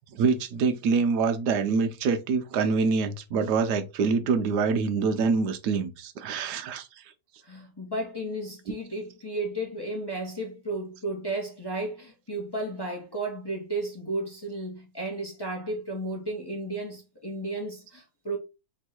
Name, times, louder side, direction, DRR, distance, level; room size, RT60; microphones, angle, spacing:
voice 1, 0.1-6.9, right 5 dB, 70° right, 1.1 m, -25 dB
voice 2, 7.4-18.4, right 2 dB, 25° left, 0.5 m, -33 dB
3.5 x 3.1 x 4.2 m
omnidirectional pair, 2.1 m